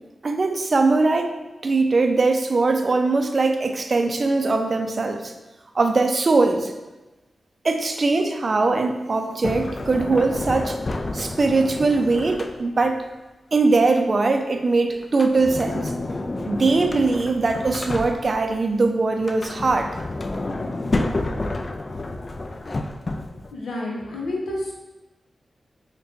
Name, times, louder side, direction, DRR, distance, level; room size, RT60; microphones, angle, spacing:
voice 1, 0.2-1.3 1.6-5.3 5.7-6.7 7.6-10.8 11.1-13.1 13.5-15.9 16.5-19.9, right 3 dB, 55° right, 5 dB, 0.4 m, -21 dB
Sliding door, 9.4-13.0 15.0-18.6 19.1-23.5, left 2 dB, 45° left, 0.3 m, -30 dB
voice 2, 23.5-24.7, left 1 dB, 85° left, -2 dB, 0.7 m, -29 dB
5.0 x 2.2 x 2.6 m, 1.1 s
cardioid pair, 45°, 0 cm